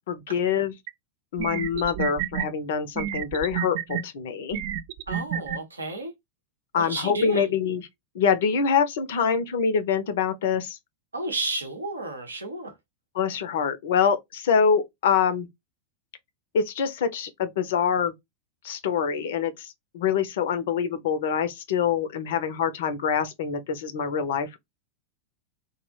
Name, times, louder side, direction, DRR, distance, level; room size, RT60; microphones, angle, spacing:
voice 1, 0.1-0.7 1.3-4.6 6.7-7.8 8.1-10.8 13.2-15.5 16.5-18.1 18.6-24.6, left 6 dB, 55° left, 0.4 m, -25 dB
sound 1, 0.9-1.0 1.4-2.5 3.0-4.0 4.5-5.6, right 10 dB, 50° right, 0.3 m, -29 dB
voice 2, 5.1-6.1 6.7-7.5 11.1-12.8, right 2 dB, 75° right, 0.7 m, -32 dB
2.1 x 2.0 x 3.0 m
figure-of-eight pair, 90°, 0 cm